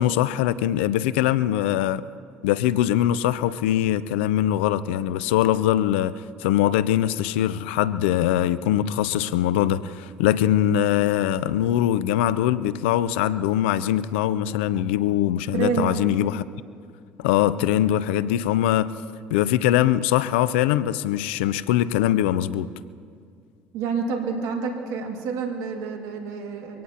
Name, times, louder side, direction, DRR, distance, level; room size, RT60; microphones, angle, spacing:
voice 1, 0.0-2.0 2.4-6.1 6.4-16.4 17.2-18.9 19.3-22.7, left 12 dB, 85° left, 17 dB, 0.5 m, -22 dB
voice 2, 15.5-16.0 23.7-26.8, right 5 dB, 75° right, 2 dB, 2.1 m, -28 dB
24.5 x 17.5 x 2.9 m, 2.2 s
hypercardioid pair, 70°, 6 cm